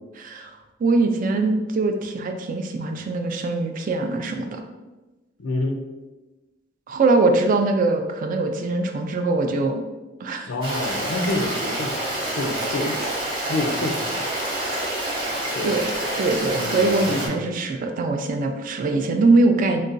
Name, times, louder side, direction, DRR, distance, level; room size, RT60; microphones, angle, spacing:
voice 1, 0.2-4.6 6.9-9.8 10.2-10.5 15.6-15.9 16.2-19.8, right 3 dB, 45° right, 5 dB, 0.3 m, -22 dB
voice 2, 5.4-5.8 10.5-12.0 12.4-13.0 13.5-14.3 15.5-15.8 16.5-17.4, left 2 dB, 85° left, 4 dB, 0.5 m, -28 dB
Stream, 10.6-17.3, right 1 dB, 25° right, 0.7 m, -27 dB
3.9 x 2.2 x 2.5 m, 1.1 s
head